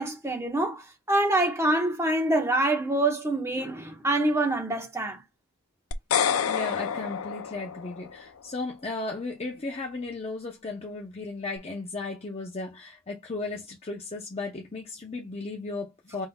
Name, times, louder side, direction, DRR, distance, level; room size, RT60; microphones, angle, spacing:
voice 1, 0.0-5.2, right 1 dB, 15° right, 1.3 m, -25 dB
sound 1, 5.9-8.2, left 8 dB, 85° left, 0.5 m, -28 dB
voice 2, 6.4-16.3, left 3 dB, 30° left, 0.8 m, -35 dB
5.4 x 3.8 x 2.3 m
head